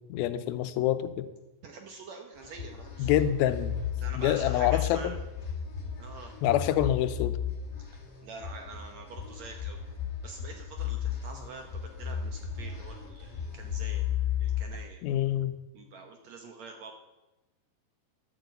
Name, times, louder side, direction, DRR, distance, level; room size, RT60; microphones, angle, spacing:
voice 1, 0.1-1.3 3.0-3.8 4.1-5.1 6.4-7.4 15.0-15.5, left 12 dB, 85° left, 12 dB, 2.5 m, -26 dB
voice 2, 1.6-3.3 4.0-5.2 6.0-6.3 8.2-9.8 10.2-15.0 15.7-16.9, right 4 dB, 70° right, 4 dB, 1.8 m, -46 dB
sound 1, 2.4-14.6, left 9 dB, 35° left, 2.1 m, -34 dB
11.0 x 8.0 x 8.1 m, 1.1 s
omnidirectional pair, 4.2 m